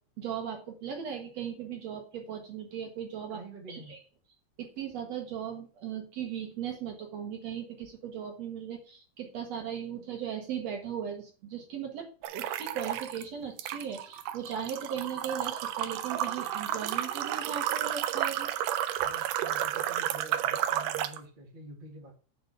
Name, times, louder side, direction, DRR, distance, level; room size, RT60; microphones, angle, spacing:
voice 1, 0.2-3.4 3.7-4.0 4.6-18.5, right 8 dB, 60° right, 3 dB, 2.1 m, -38 dB
voice 2, 3.3-3.9 19.0-22.1, right 1 dB, 20° right, 0 dB, 1.4 m, -47 dB
sound 1, 12.2-13.2 13.6-21.2, right 11 dB, 80° right, 2.2 m, -32 dB
6.8 x 5.2 x 6.7 m, 0.38 s
omnidirectional pair, 3.7 m